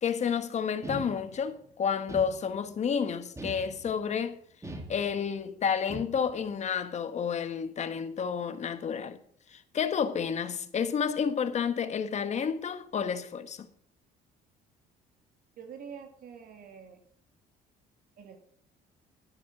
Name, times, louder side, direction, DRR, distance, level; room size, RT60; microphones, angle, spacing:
voice 1, 0.0-4.4 4.9-9.2 9.5-13.7, left 7 dB, 45° left, 1.2 m, -30 dB
sound 1, 0.8-1.6 2.1-2.8 3.4-4.1 4.6-5.4 5.9-6.5, right 1 dB, 15° right, 1.9 m, -42 dB
voice 2, 15.6-17.0 18.2-18.4, right 7 dB, 60° right, 2.4 m, -46 dB
11.5 x 8.8 x 6.0 m
cardioid pair, 110°, 17 cm